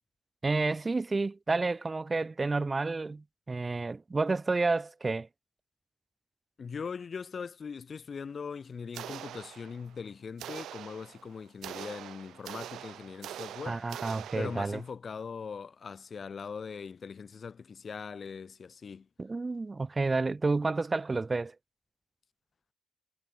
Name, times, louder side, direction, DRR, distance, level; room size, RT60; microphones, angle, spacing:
voice 1, 0.4-5.3 13.7-14.8 19.2-21.5, right 3 dB, 35° right, 1.2 m, -30 dB
voice 2, 6.6-13.8 14.4-19.1, left 5 dB, 55° left, 3.5 m, -41 dB
sound 1, 8.9-10.0 10.4-14.9, right 11 dB, 80° right, 1.3 m, -44 dB
hypercardioid pair, 40°, 0 cm